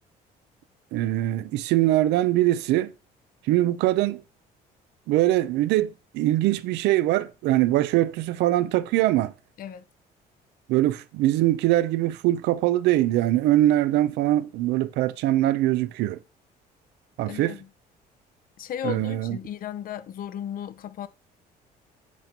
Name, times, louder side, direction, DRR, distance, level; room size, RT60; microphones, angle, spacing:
voice 1, 0.9-2.9 3.5-4.2 5.1-9.3 10.7-16.2 17.2-17.6 18.8-19.4, right 15 dB, 85° right, 0.6 m, -22 dB
voice 2, 17.3-17.7 18.6-21.1, left 10 dB, 55° left, 0.7 m, -35 dB
8.3 x 4.4 x 5.3 m
cardioid pair, 110°, 17 cm